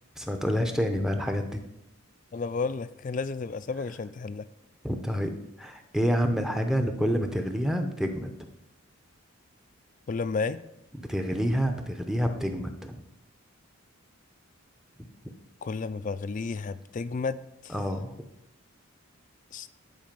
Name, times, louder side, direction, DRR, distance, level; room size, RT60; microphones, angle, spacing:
voice 1, 0.2-1.6 4.8-5.3 5.6-8.5 10.9-13.0 17.7-18.1, equal, ahead, 5 dB, 0.6 m, -28 dB
voice 2, 2.3-4.5 10.1-10.6 15.6-17.7 19.5-19.7, left 4 dB, 35° left, 15 dB, 0.3 m, -32 dB
10.5 x 4.8 x 5.2 m, 0.85 s
head